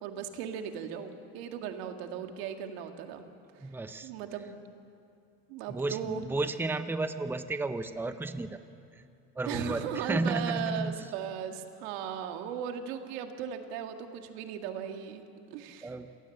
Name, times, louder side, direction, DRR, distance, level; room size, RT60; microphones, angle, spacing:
voice 1, 0.0-3.2 3.6-3.7 4.0-4.6 5.5-6.2 9.5-15.2 15.5-16.0, right 8 dB, 85° right, 5 dB, 2.0 m, -37 dB
voice 2, 3.6-4.1 5.7-8.6 9.0-9.1 9.4-11.0 15.8-16.1, right 2 dB, 5° right, 10 dB, 0.8 m, -33 dB
28.5 x 18.0 x 8.0 m, 2.5 s
supercardioid pair, 115°, 30 cm